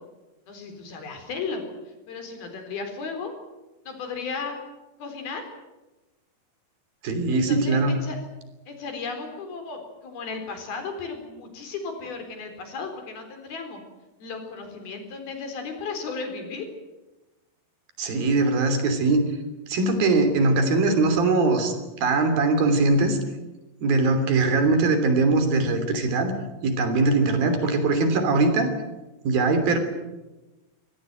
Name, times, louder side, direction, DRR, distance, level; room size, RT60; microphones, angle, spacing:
voice 1, 0.5-1.6 2.1-3.3 3.9-4.6 5.0-5.4 7.3-8.2 8.7-13.8 14.2-16.7, left 4 dB, 80° left, 5 dB, 6.0 m, -35 dB
voice 2, 7.0-8.0 18.0-19.3 19.7-21.7 22.0-23.2 23.8-26.3 26.6-28.7 29.2-29.8, right 3 dB, 75° right, 8 dB, 5.0 m, -21 dB
25.0 x 18.0 x 9.2 m, 1.1 s
omnidirectional pair, 4.3 m